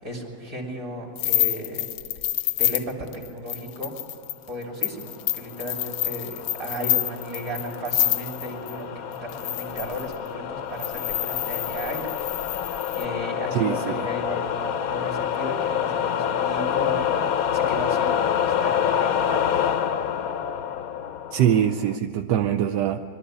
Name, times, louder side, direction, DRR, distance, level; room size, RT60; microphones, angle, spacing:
voice 1, 0.0-1.9 2.6-3.9 4.5-12.2 12.9-17.2 17.5-19.5, equal, 45° right, 0 dB, 3.6 m, -35 dB
sound 1, 1.2-8.7 9.3-10.2 10.8-13.1, left 14 dB, 80° left, 1.5 m, -27 dB
sound 2, 5.5-22.0, left 9 dB, 60° left, 1.0 m, -27 dB
voice 2, 13.5-14.1 21.3-23.0, right 10 dB, 70° right, 6 dB, 1.2 m, -23 dB
22.5 x 13.0 x 9.7 m, 2.4 s
omnidirectional pair, 2.1 m